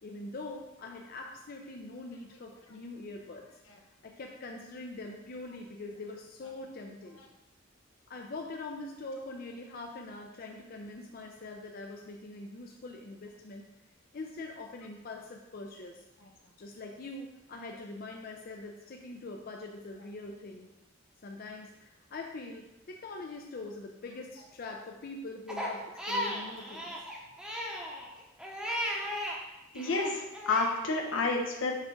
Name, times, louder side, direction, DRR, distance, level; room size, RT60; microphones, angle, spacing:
voice 1, 0.0-3.5 4.0-7.2 8.1-13.6 14.1-16.0 16.6-20.7 21.2-26.9, left 2 dB, 50° left, 2 dB, 0.5 m, -43 dB
Crying sobbing, 25.5-29.4 29.7-30.8, equal, 5° right, 0.8 m, -36 dB
voice 2, 29.7-31.8, left 3 dB, 85° left, 0 dB, 1.2 m, -30 dB
6.5 x 3.5 x 5.0 m, 0.97 s
head